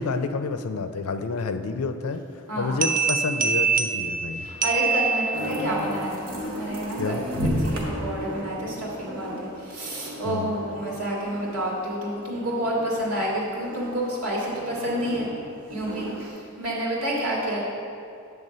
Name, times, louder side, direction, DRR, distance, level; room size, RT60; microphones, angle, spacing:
voice 1, 0.0-4.5 7.0-7.2 10.2-10.5, left 4 dB, 80° left, 9 dB, 0.5 m, -29 dB
sound 1, 2.8-5.8, right 5 dB, 40° right, 0.4 m, -25 dB
voice 2, 4.4-15.3 15.7-17.6, right 1 dB, 90° right, -4 dB, 2.0 m, -29 dB
sound 2, 5.3-13.2 13.5-16.3, equal, 55° right, 1.2 m, -34 dB
8.7 x 3.5 x 6.6 m, 2.4 s
head